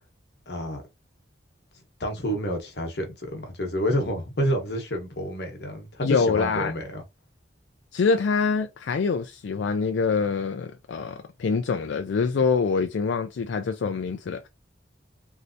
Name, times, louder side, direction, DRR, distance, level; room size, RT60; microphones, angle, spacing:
voice 1, 0.5-0.8 2.0-7.0, equal, 60° left, 1.0 m, -29 dB
voice 2, 6.0-6.7 7.9-14.5, left 5 dB, 80° left, 0.4 m, -25 dB
3.1 x 2.7 x 2.6 m
head